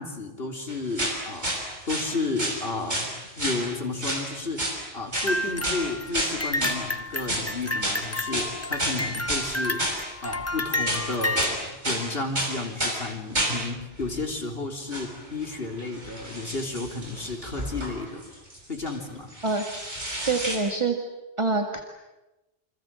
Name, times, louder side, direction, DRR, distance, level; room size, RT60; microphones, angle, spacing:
voice 1, 0.0-3.1 3.4-9.8 10.2-18.2 18.7-19.3, left 3 dB, 70° left, 2 dB, 3.9 m, -32 dB
sound 1, 0.7-2.1 2.4-3.1 3.4-3.6 4.0-4.2 4.6-4.8 5.1-5.3 5.6-5.8 6.1-6.8 7.3-7.5 7.8-8.0 8.3-9.5 9.8-10.5 10.8-11.6 11.8-12.1 12.4-13.0 13.3-13.6 14.0-14.2 14.9-15.1 15.4-19.0 19.3-20.6, right 1 dB, 45° right, 6.3 m, -30 dB
sound 2, 5.1-11.6, left 2 dB, 15° left, 0.8 m, -31 dB
voice 2, 20.3-21.0 21.4-21.8, right 3 dB, 30° right, 3 dB, 1.9 m, -25 dB
28.0 x 26.5 x 7.6 m, 1.0 s
omnidirectional pair, 1.0 m